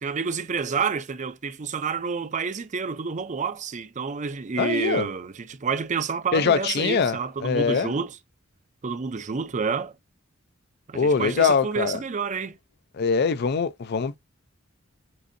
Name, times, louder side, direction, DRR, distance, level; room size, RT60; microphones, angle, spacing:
voice 1, 0.0-8.2 8.8-9.9 10.9-12.6, right 5 dB, 35° right, 0.5 m, -29 dB
voice 2, 4.6-5.1 6.3-7.9 10.9-12.0 13.0-14.2, left 5 dB, 50° left, 0.5 m, -23 dB
7.5 x 2.7 x 2.6 m
head